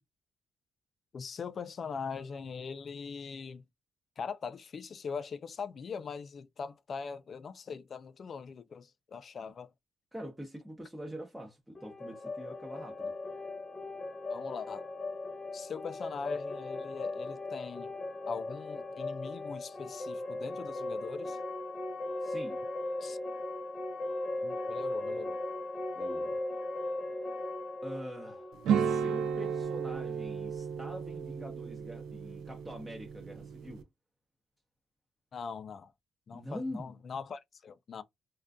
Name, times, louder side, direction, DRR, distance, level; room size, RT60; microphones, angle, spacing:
voice 1, 1.1-3.6 4.2-9.7 14.3-14.9 15.5-17.9 18.3-21.4 23.0-23.2 24.4-25.4 35.3-35.9 36.3-38.0, left 5 dB, 50° left, 0.3 m, -41 dB
voice 2, 10.1-13.1 22.2-22.6 25.9-26.4 27.8-33.9 36.3-37.0, equal, 5° right, 0.8 m, -44 dB
sound 1, 11.7-29.5, left 2 dB, 30° left, 0.9 m, -38 dB
sound 2, 28.6-33.8, right 7 dB, 85° right, 0.3 m, -34 dB
2.4 x 2.2 x 2.4 m
cardioid pair, 90°, 0 cm